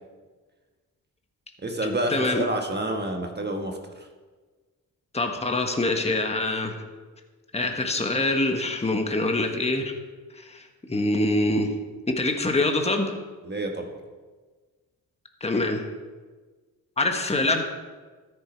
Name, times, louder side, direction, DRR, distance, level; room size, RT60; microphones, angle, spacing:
voice 1, 1.6-4.1 13.4-13.9, right 1 dB, 30° right, 3 dB, 1.5 m, -29 dB
voice 2, 2.1-2.4 5.1-6.7 7.5-9.9 10.3-11.7 12.1-13.1 15.4-15.8 17.0-17.6, left 2 dB, 15° left, 4 dB, 1.3 m, -25 dB
13.5 x 6.9 x 4.5 m, 1.4 s
supercardioid pair, 55°, 36 cm